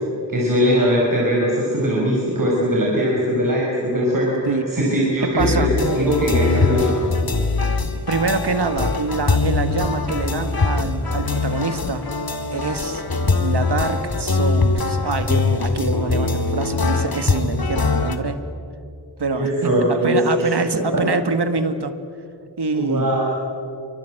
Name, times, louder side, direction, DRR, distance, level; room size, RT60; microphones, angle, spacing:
voice 1, 0.3-5.7 5.9-7.0 19.3-20.5 20.9-21.0 22.7-23.3, equal, 45° right, -3 dB, 5.6 m, -20 dB
voice 2, 5.2-5.7 8.1-12.0 12.5-13.0 13.4-18.4 19.2-21.9 22.6-23.1, right 4 dB, 65° right, 9 dB, 2.0 m, -25 dB
sound 1, 5.4-18.2, left 3 dB, 55° left, 2.2 m, -22 dB
28.5 x 24.5 x 7.9 m, 2.5 s
wide cardioid pair, 85°, 43 cm